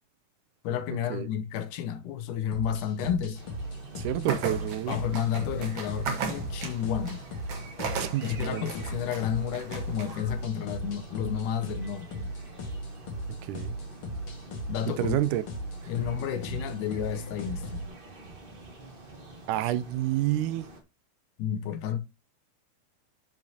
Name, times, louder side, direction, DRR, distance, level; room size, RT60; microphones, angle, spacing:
voice 1, 0.6-3.4 4.9-7.2 8.2-12.3 14.7-15.2 15.9-17.9 21.4-22.0, left 9 dB, 80° left, 2.2 m, -31 dB
sound 1, 2.5-17.9, equal, 50° left, 2.2 m, -37 dB
sound 2, 3.3-20.8, right 2 dB, 40° right, 0.8 m, -48 dB
voice 2, 4.0-5.0 8.0-8.7 13.4-13.8 14.9-15.4 19.5-20.7, right 13 dB, 80° right, 2.1 m, -29 dB
sound 3, 4.2-10.4, right 5 dB, 55° right, 2.1 m, -37 dB
10.0 x 5.9 x 2.8 m
omnidirectional pair, 3.7 m